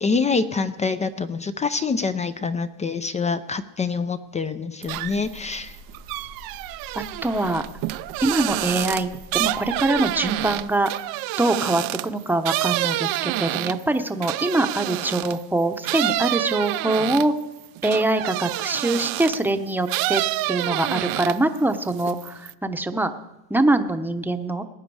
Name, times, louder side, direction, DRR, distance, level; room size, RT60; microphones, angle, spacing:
voice 1, 0.0-5.7, left 4 dB, 15° left, 11 dB, 0.4 m, -25 dB
sound 1, 4.8-10.6, left 1 dB, 75° left, 5.3 m, -45 dB
sound 2, 4.8-5.4 5.7-15.4 15.8-19.5 19.9-21.6 21.9-22.5, right 18 dB, 50° right, 0.5 m, -28 dB
voice 2, 6.9-7.6 8.2-10.9 11.4-17.3 17.8-20.2 20.5-23.1 23.5-24.6, right 2 dB, 5° right, 8 dB, 0.8 m, -23 dB
19.0 x 9.2 x 4.8 m, 1.0 s
supercardioid pair, 105°, 46 cm